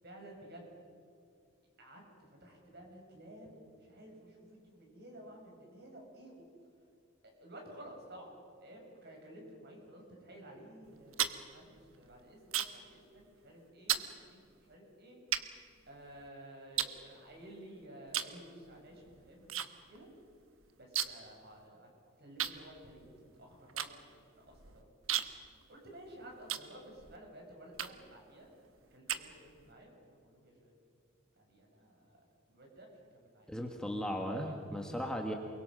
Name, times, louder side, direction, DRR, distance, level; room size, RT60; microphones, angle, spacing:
voice 1, 0.0-0.7 1.8-6.4 7.2-8.3 8.6-15.2 15.9-20.1 20.8-21.9 22.2-25.0 25.7-28.5 28.9-30.7 31.4-32.2 32.5-33.5 34.1-34.8, right 1 dB, 50° right, 0 dB, 6.9 m, -53 dB
sound 1, 10.8-12.9 13.2-13.5 13.9-14.1 14.7-14.8 15.3-16.3 16.8-17.6 18.1-18.4 18.7-19.7 19.9-20.0 20.3-21.3 21.6-21.7 22.4-27.2 27.7-28.2 28.6-29.7, right 11 dB, 80° right, 1.2 m, -36 dB
voice 2, 33.5-35.3, equal, 5° left, 2 dB, 1.7 m, -37 dB
29.0 x 22.5 x 6.5 m, 2.4 s
head